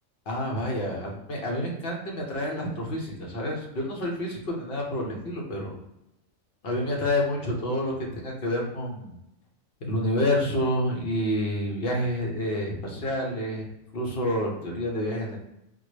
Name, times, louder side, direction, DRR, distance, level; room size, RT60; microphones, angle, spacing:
voice 1, 0.3-5.7 6.6-9.1 9.8-13.7 13.9-15.4, left 1 dB, 55° left, -1 dB, 1.0 m, -28 dB
4.2 x 2.0 x 3.1 m, 0.85 s
omnidirectional pair, 1.3 m